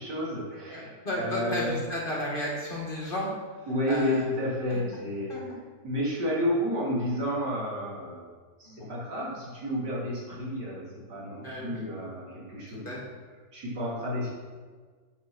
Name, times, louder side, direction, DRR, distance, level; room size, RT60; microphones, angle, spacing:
voice 1, 0.0-0.9 1.2-1.8 3.7-5.3 5.8-8.2 8.6-10.8 11.1-12.9 13.5-14.3, equal, 90° right, -6 dB, 3.4 m, -31 dB
voice 2, 0.5-3.3 3.9-4.3 4.7-4.8 5.3-5.5 8.6-8.9 11.3-11.8 12.7-13.0, equal, 30° left, -3 dB, 2.1 m, -33 dB
8.8 x 6.4 x 6.1 m, 1.5 s
omnidirectional pair, 1.8 m